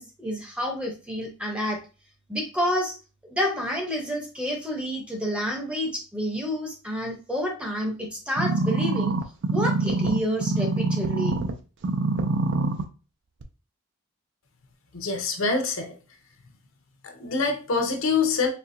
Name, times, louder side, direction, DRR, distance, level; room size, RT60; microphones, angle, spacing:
voice 1, 0.0-1.8 2.3-3.0 3.3-9.2 9.5-11.4, equal, 5° right, 2 dB, 0.7 m, -29 dB
sound 1, 8.4-11.5 11.8-12.8 13.4-13.5, right 3 dB, 55° right, 0.5 m, -25 dB
voice 2, 14.9-15.9 17.0-18.5, left 4 dB, 65° left, 5 dB, 0.8 m, -25 dB
4.3 x 2.8 x 2.7 m, 0.33 s
head